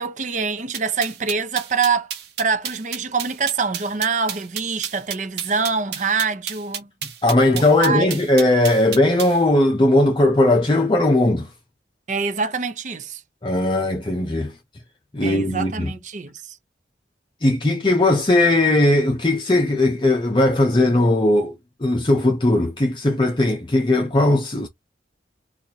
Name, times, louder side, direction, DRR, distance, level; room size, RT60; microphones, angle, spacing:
voice 1, 0.0-2.1 2.4-6.9 7.5-8.2 12.1-13.2 15.2-16.6, right 5 dB, 45° right, 0.6 m, -25 dB
sound 1, 0.7-9.4, right 8 dB, 65° right, 1.0 m, -31 dB
voice 2, 7.2-11.5 13.4-14.5 15.1-15.9 17.4-21.5 21.8-24.7, left 2 dB, 25° left, 0.6 m, -18 dB
4.4 x 2.5 x 2.8 m
head